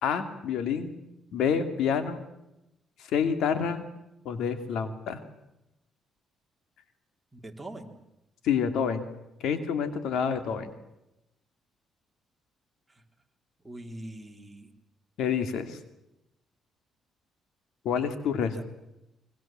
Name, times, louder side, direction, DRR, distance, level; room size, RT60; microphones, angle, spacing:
voice 1, 0.0-1.0 1.3-2.2 3.1-3.8 4.2-5.2 8.4-9.1 9.4-10.7 15.2-15.8 17.8-18.6, left 7 dB, 80° left, 10 dB, 2.6 m, -28 dB
voice 2, 7.3-7.9 12.9-13.0 13.6-14.7 18.4-18.6, right 1 dB, 10° right, 3 dB, 3.6 m, -43 dB
26.0 x 23.5 x 7.6 m, 0.90 s
cardioid pair, 90°, 0 cm